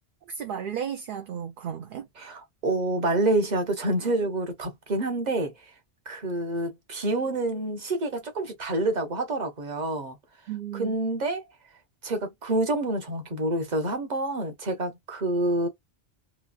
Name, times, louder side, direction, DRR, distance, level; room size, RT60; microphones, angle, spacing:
voice 1, 0.3-2.1 10.5-10.9, right 8 dB, 60° right, 0.6 m, -34 dB
voice 2, 2.2-5.5 6.1-10.2 10.7-11.4 12.0-15.7, right 2 dB, 45° right, 1.0 m, -27 dB
3.1 x 2.2 x 2.4 m
omnidirectional pair, 1.1 m